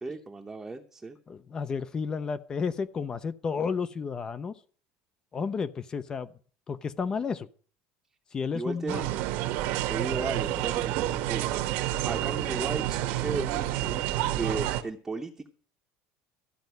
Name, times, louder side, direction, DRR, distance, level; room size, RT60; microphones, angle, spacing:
voice 1, 0.0-1.2 8.5-9.1 9.9-11.8 12.0-14.1 14.4-15.5, right 3 dB, 10° right, 2 dB, 0.8 m, -35 dB
voice 2, 1.3-4.5 5.3-6.3 6.7-7.5 8.3-9.0, left 5 dB, 20° left, 15 dB, 0.5 m, -32 dB
sound 1, 8.9-14.8, right 14 dB, 60° right, 1.1 m, -29 dB
14.0 x 5.3 x 9.2 m, 0.43 s
cardioid pair, 175°, 4 cm